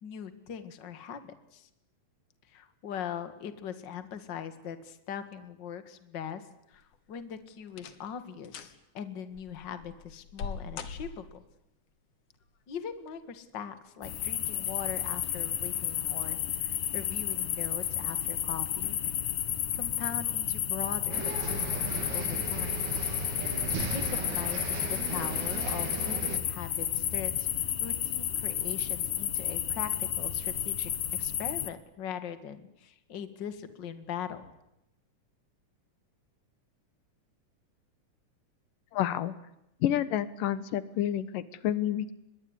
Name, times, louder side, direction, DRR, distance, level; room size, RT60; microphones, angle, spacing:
voice 1, 0.0-1.7 2.5-6.4 6.7-11.4 12.7-19.0 19.7-22.9 23.9-27.5 27.8-34.4, left 8 dB, 40° left, 11 dB, 2.2 m, -41 dB
sound 1, 6.7-7.2 7.7-8.1 8.4-8.8 9.3-11.5 12.7-13.3 13.8-13.9 14.6-14.8 15.2-15.3, left 5 dB, 55° left, 2.7 m, -42 dB
sound 2, 14.0-31.7, left 11 dB, 70° left, 3.0 m, -32 dB
sound 3, 21.1-26.4, right 5 dB, 65° right, 3.8 m, -36 dB
voice 2, 38.9-39.3 39.8-42.1, left 11 dB, 90° left, 16 dB, 2.9 m, -29 dB
25.5 x 21.5 x 9.9 m, 0.83 s
omnidirectional pair, 3.7 m